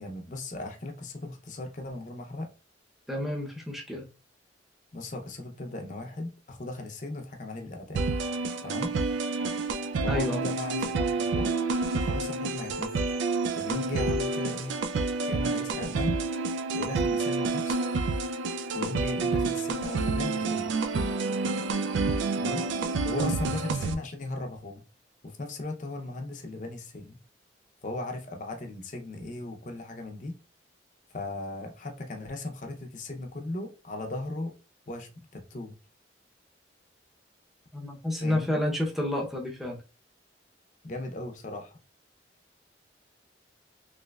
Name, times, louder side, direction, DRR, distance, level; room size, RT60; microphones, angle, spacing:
voice 1, 0.0-2.5 4.9-8.1 8.6-9.0 10.0-11.5 11.9-13.1 13.5-14.7 15.2-16.2 16.7-17.8 18.7-20.7 22.4-22.7 23.0-24.8 25.2-27.2 27.8-30.4 31.1-34.5 34.9-35.8 38.2-38.6 40.8-41.8, left 2 dB, 40° left, 0.6 m, -37 dB
voice 2, 3.1-4.0 8.8-8.9 10.1-10.4 37.7-39.8, left 1 dB, ahead, 0.6 m, -30 dB
sound 1, 7.9-23.9, right 3 dB, 75° right, 0.3 m, -29 dB
3.2 x 3.0 x 2.3 m
head